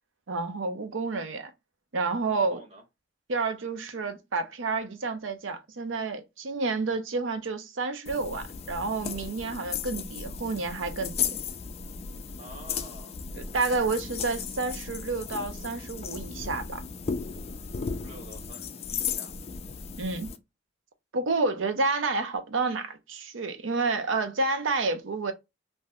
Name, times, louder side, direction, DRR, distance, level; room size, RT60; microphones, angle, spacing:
voice 1, 0.3-1.5 1.9-2.6 3.3-11.4 13.3-16.8 20.0-20.3 21.1-25.3, right 3 dB, 75° right, 0.6 m, -30 dB
voice 2, 2.3-2.8 12.4-13.2 17.8-19.4, right 1 dB, 35° right, 1.2 m, -48 dB
sound 1, 8.1-20.4, left 6 dB, 35° left, 0.3 m, -35 dB
2.7 x 2.2 x 3.4 m
head